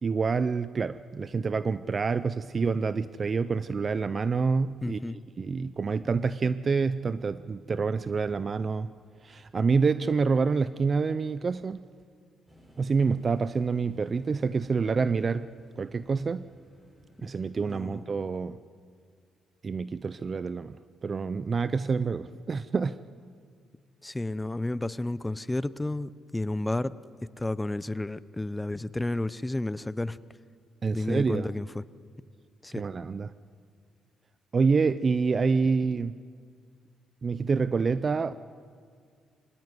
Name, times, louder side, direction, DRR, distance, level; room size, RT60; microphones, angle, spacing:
voice 1, 0.0-5.0 5.4-8.9 9.2-11.8 12.8-15.5 15.8-16.4 17.2-18.6 19.6-23.0 30.8-31.5 32.8-33.3 34.5-36.1 37.2-38.3, right 5 dB, 40° right, 14 dB, 0.5 m, -27 dB
voice 2, 4.8-5.2 17.2-17.3 17.7-18.1 24.0-27.0 27.4-30.2 30.9-31.8 32.6-32.8, left 2 dB, 10° left, 17 dB, 0.7 m, -31 dB
sound 1, 12.5-18.0, equal, 15° right, 8.0 m, -58 dB
24.0 x 17.5 x 9.7 m, 2.1 s
cardioid pair, 90°, 0 cm